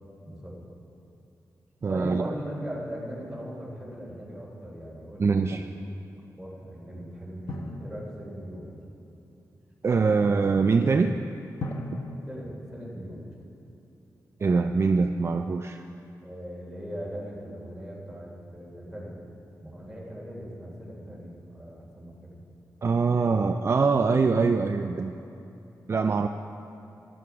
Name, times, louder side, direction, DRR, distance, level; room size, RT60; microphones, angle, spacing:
voice 1, 0.2-0.6 1.9-5.7 6.3-8.8 12.3-13.3 16.2-19.1 19.6-22.3, equal, ahead, -5 dB, 3.6 m, -39 dB
voice 2, 1.8-2.3 5.2-5.7 9.8-11.1 11.9-12.0 14.4-15.8 22.8-25.1 25.9-26.3, right 4 dB, 40° right, 6 dB, 0.4 m, -23 dB
Drum, 7.5-9.0 11.6-13.8, left 2 dB, 60° left, 1.1 m, -39 dB
12.5 x 12.5 x 4.8 m, 2.9 s
wide cardioid pair, 110°, 7 cm